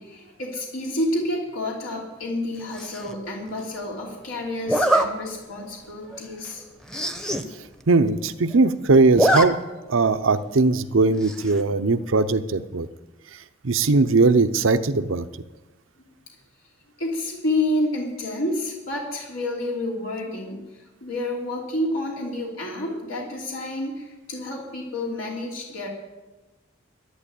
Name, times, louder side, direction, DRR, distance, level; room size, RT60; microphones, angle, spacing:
voice 1, 0.0-6.6 16.0-16.1 17.0-25.9, left 1 dB, 85° left, -2 dB, 3.0 m, -29 dB
Zipper (clothing), 2.7-3.1 4.7-5.1 5.6-5.8 6.1-6.2 6.5-6.6 6.8-7.4 7.8-7.9 8.1-8.6 8.9-9.5 9.8-9.9 11.2-11.6, right 1 dB, 5° left, 0.9 m, -23 dB
voice 2, 7.9-9.6 9.9-12.9 13.6-15.3, right 3 dB, 75° right, 11 dB, 0.7 m, -19 dB
11.5 x 11.0 x 8.4 m, 1.1 s
head